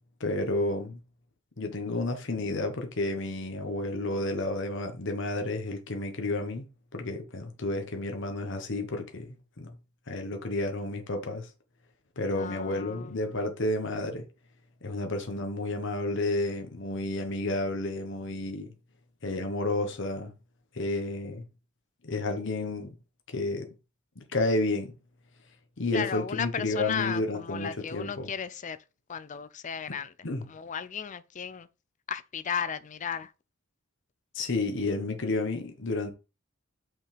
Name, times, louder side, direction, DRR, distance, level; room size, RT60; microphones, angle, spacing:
voice 1, 0.2-1.0 1.6-6.6 6.9-9.7 10.1-11.5 12.2-14.3 14.8-18.7 19.2-20.3 20.7-21.4 22.0-22.9 23.3-23.7 24.2-24.9 25.8-28.3 30.2-30.4 34.3-36.1, left 2 dB, 60° left, 1.2 m, -31 dB
voice 2, 12.3-13.2 25.9-28.8 29.1-30.1 30.5-31.7 32.1-33.3, left 7 dB, 35° left, 0.4 m, -35 dB
6.0 x 5.5 x 3.4 m
head